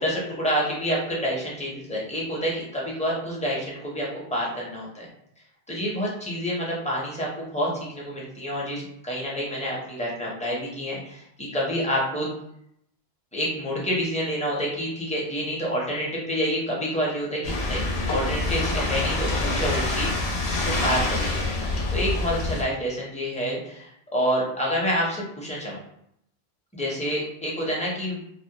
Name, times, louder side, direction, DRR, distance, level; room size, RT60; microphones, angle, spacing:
voice 1, 0.0-5.1 5.7-12.3 13.3-21.4 21.9-25.8 26.7-28.2, equal, 10° left, -5 dB, 0.5 m, -28 dB
sound 1, 17.4-22.6, left 2 dB, 85° left, 0.8 m, -26 dB
2.3 x 2.0 x 2.8 m, 0.74 s
omnidirectional pair, 1.1 m